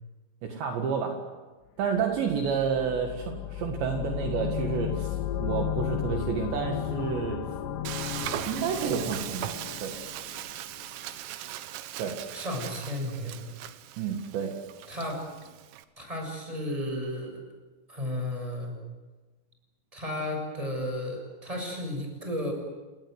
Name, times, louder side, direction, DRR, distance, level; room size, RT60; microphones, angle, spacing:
voice 1, 0.4-1.2 1.8-7.4 8.5-10.0 12.0-12.2 14.0-14.5, right 7 dB, 65° right, 3 dB, 3.7 m, -30 dB
sound 1, 1.9-10.8, left 12 dB, 75° left, 2.8 m, -34 dB
Frying (food), 7.9-15.9, right 12 dB, 90° right, 3.8 m, -39 dB
voice 2, 12.3-13.5 14.9-15.2 16.0-17.4 17.9-18.7 19.9-22.5, left 1 dB, 5° right, 2 dB, 6.4 m, -33 dB
30.0 x 19.5 x 8.0 m, 1.2 s
omnidirectional pair, 5.8 m